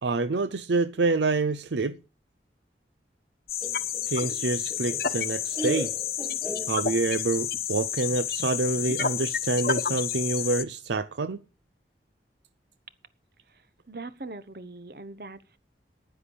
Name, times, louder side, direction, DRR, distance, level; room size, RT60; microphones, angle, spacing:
voice 1, 0.0-2.0 4.1-5.9 6.7-11.4, right 3 dB, 80° right, 0.6 m, -27 dB
sound 1, 3.5-10.6, left 8 dB, 55° left, 1.0 m, -30 dB
Laughter, 3.6-7.3, equal, 5° right, 2.1 m, -37 dB
voice 2, 13.5-15.6, right 2 dB, 55° right, 1.1 m, -42 dB
10.0 x 10.0 x 7.1 m
head